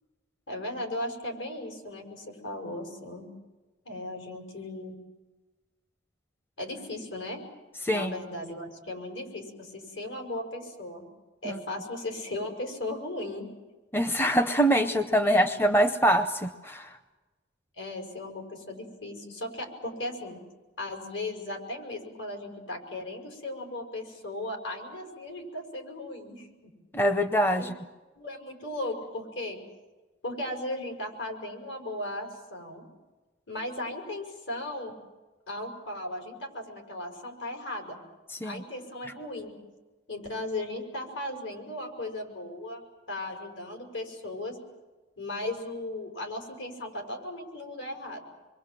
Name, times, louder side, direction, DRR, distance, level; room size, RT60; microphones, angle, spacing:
voice 1, 0.5-3.3 3.9-4.9 6.6-7.4 7.9-11.1 11.4-13.5 15.2-15.7 17.8-20.4 20.8-26.7 27.6-27.7 28.2-29.6 30.2-32.9 33.5-34.9 35.5-38.0 38.4-39.6 40.1-44.6 45.2-48.2, left 1 dB, 75° left, 3 dB, 5.7 m, -37 dB
voice 2, 7.8-8.1 11.4-11.6 13.9-17.0 26.9-27.7 38.3-38.6, equal, 10° left, 8 dB, 0.7 m, -24 dB
27.0 x 22.5 x 7.6 m, 1.2 s
head